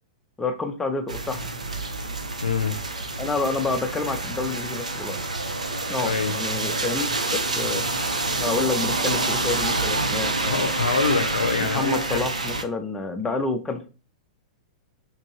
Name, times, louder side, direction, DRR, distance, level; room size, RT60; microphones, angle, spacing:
voice 1, 0.4-1.5 3.2-5.2 5.9-7.8 8.4-10.7 11.6-13.9, left 3 dB, 10° left, 0.4 m, -28 dB
sound 1, 1.1-12.6, right 2 dB, 80° right, 0.5 m, -27 dB
voice 2, 2.4-2.8 6.0-6.4 10.4-12.2, left 5 dB, 75° left, 0.5 m, -25 dB
2.9 x 2.6 x 2.9 m
figure-of-eight pair, 105°, 4 cm